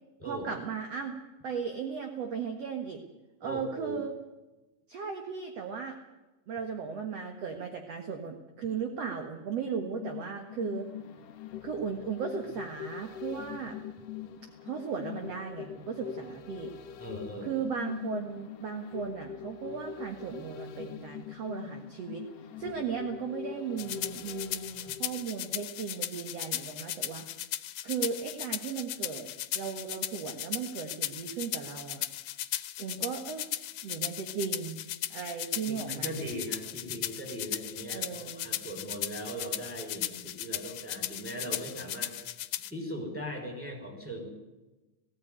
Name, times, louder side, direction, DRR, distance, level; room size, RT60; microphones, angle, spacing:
voice 1, 0.2-1.2 1.4-3.0 3.4-4.1 4.9-6.0 6.5-10.9 11.6-13.8 14.6-16.7 17.4-22.2 22.6-27.2 27.8-32.1 32.8-33.5 33.8-34.8 35.1-36.1 37.9-38.5, right 6 dB, 55° right, 4 dB, 2.3 m, -36 dB
voice 2, 3.4-4.0 17.0-17.6 35.7-42.2 42.7-44.3, equal, 5° left, 2 dB, 5.0 m, -39 dB
sound 1, 9.7-25.9 26.3-26.4, left 9 dB, 65° left, 1.7 m, -43 dB
sound 2, 23.8-42.7, left 13 dB, 85° left, 2.6 m, -36 dB
18.5 x 16.0 x 9.4 m, 1.1 s
omnidirectional pair, 4.1 m